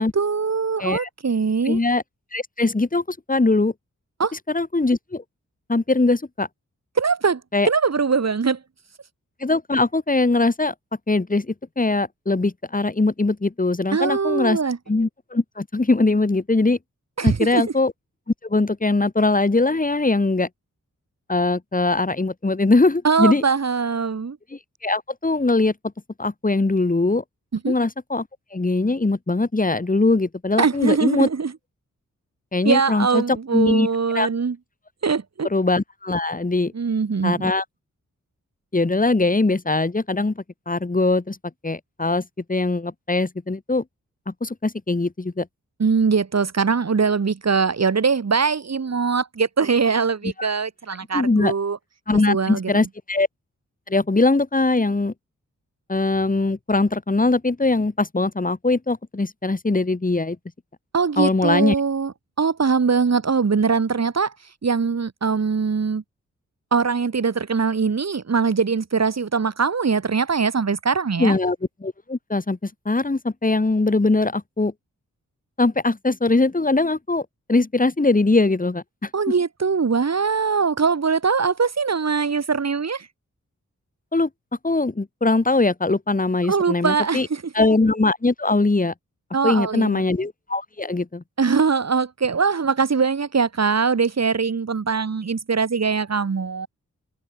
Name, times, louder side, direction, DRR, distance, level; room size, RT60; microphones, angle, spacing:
voice 1, 0.0-1.8 4.2-4.3 7.0-7.4 7.7-8.6 13.9-14.8 17.2-17.6 23.0-24.4 27.6-27.7 30.6-31.5 32.6-34.6 35.0-35.5 36.7-37.5 45.8-51.8 52.3-52.7 60.9-64.3 64.6-66.0 66.7-71.3 79.1-83.1 86.5-87.5 89.3-90.0 91.4-96.7, right 5 dB, 55° right, 4.1 m, -22 dB
voice 2, 1.7-2.0 2.3-3.7 4.5-5.2 5.7-6.5 7.5-7.7 9.4-10.7 11.1-14.6 14.9-16.8 17.2-17.9 18.4-20.5 21.3-23.4 24.5-25.7 26.2-27.2 27.7-28.3 28.5-31.3 32.5-33.9 34.1-34.3 35.5-36.7 37.2-37.6 38.7-41.4 41.6-42.2 42.5-43.8 44.3-45.5 50.4-50.5 51.1-51.5 52.1-53.3 53.9-55.1 55.9-60.4 61.2-61.7 71.2-74.7 75.6-79.1 84.1-84.3 84.6-87.3 87.5-88.9 89.4-91.2, left 3 dB, 25° left, 3.8 m, -21 dB
wide cardioid pair, 85°, 31 cm